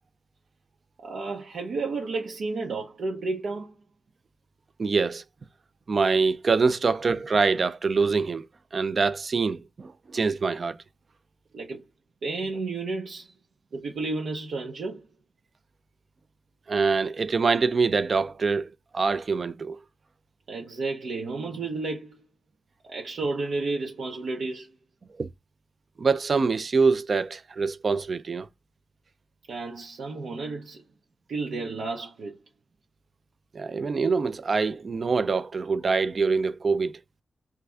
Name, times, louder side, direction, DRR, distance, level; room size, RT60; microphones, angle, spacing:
voice 1, 1.0-3.8 11.5-11.8 12.2-13.3 13.7-15.0 20.5-22.2 22.8-24.7 29.5-30.8 31.3-32.4, right 3 dB, 85° right, 0.9 m, -32 dB
voice 2, 4.8-5.2 5.9-8.5 8.7-10.8 16.7-19.8 25.2-25.3 26.0-28.5 33.5-36.9, right 4 dB, 40° right, 0.4 m, -24 dB
3.6 x 3.3 x 3.3 m
wide cardioid pair, 160°, 0 cm